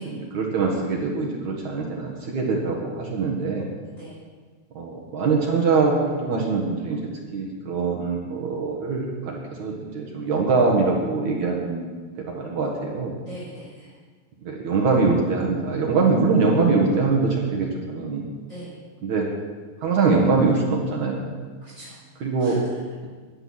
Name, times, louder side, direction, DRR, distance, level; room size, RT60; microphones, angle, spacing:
voice 1, 0.0-3.7 4.8-7.0 7.3-11.9 12.3-13.2 14.4-18.3 19.0-19.3 19.8-21.3 22.2-22.6, right 4 dB, 60° right, -1 dB, 2.1 m, -23 dB
voice 2, 13.2-13.9 18.5-18.7 21.6-22.0 22.4-22.8, right 1 dB, 15° left, -10 dB, 5.3 m, -41 dB
12.5 x 9.1 x 7.9 m, 1.5 s
omnidirectional pair, 5.2 m